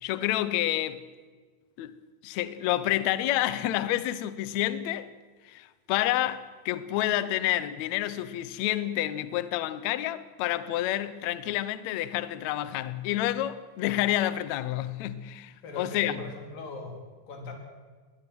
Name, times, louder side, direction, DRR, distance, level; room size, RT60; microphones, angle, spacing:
voice 1, 0.0-1.0 1.8-1.9 2.2-5.1 5.4-16.2, left 14 dB, 85° left, 1.6 m, -29 dB
voice 2, 15.6-17.0 17.3-17.5, left 3 dB, 65° left, 5.0 m, -39 dB
21.5 x 20.0 x 6.2 m
omnidirectional pair, 4.4 m